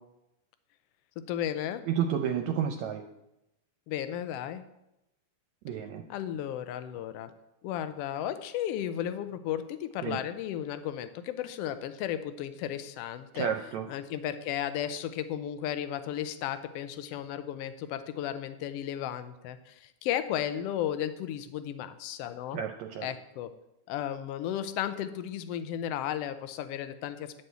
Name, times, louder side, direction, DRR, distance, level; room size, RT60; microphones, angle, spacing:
voice 1, 1.3-1.8 3.9-4.6 6.1-7.3 7.6-13.5 13.9-22.6 23.0-23.5 23.9-27.3, left 10 dB, 80° left, 11 dB, 1.4 m, -34 dB
voice 2, 1.9-3.0 5.7-6.0 10.0-10.2 13.3-13.9 22.5-23.1, right 8 dB, 75° right, 4 dB, 1.9 m, -31 dB
11.0 x 4.3 x 8.0 m, 0.87 s
omnidirectional pair, 3.4 m